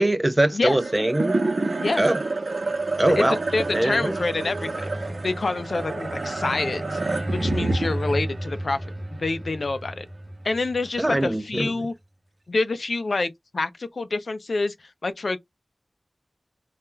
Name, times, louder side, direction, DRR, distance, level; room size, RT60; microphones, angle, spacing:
voice 1, 0.0-1.4 2.0-2.2 3.0-3.4 3.7-4.2 11.0-11.7, right 1 dB, 25° right, 0.4 m, -22 dB
sound 1, 0.7-11.2, right 2 dB, 80° right, 0.8 m, -29 dB
voice 2, 3.2-4.9 5.2-7.0 7.3-8.9 9.2-10.1 10.4-11.9 12.5-14.7 15.0-15.4, left 3 dB, 85° left, 0.4 m, -27 dB
2.3 x 2.1 x 3.0 m
wide cardioid pair, 50°, 0 cm